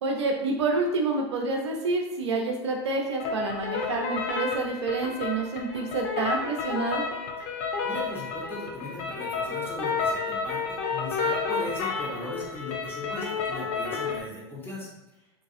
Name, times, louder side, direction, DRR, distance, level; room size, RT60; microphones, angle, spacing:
voice 1, 0.0-7.0, right 3 dB, 75° right, 1 dB, 0.5 m, -28 dB
sound 1, 3.2-14.2, left 4 dB, 45° left, 0.6 m, -31 dB
voice 2, 7.8-14.9, left 1 dB, 15° left, -4 dB, 1.0 m, -38 dB
2.5 x 2.3 x 2.6 m, 0.93 s
hypercardioid pair, 95°, 15 cm